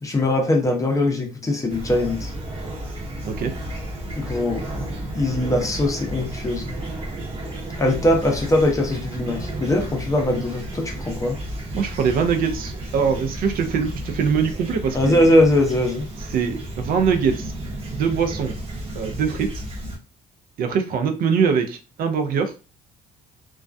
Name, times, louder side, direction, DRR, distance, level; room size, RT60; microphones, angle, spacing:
voice 1, 0.0-2.3 4.2-4.7 5.1-6.7 7.8-11.4 14.9-16.1, left 1 dB, 20° left, 1 dB, 0.6 m, -21 dB
Fowl / Chirp tweet, 1.7-20.0, right 1 dB, 35° right, 0.8 m, -32 dB
voice 2, 11.7-15.3 16.3-17.5 17.9-18.5 18.9-19.6 20.6-22.5, right 6 dB, 60° right, 6 dB, 0.4 m, -23 dB
2.3 x 2.1 x 2.5 m, 0.34 s
cardioid pair, 110°, 17 cm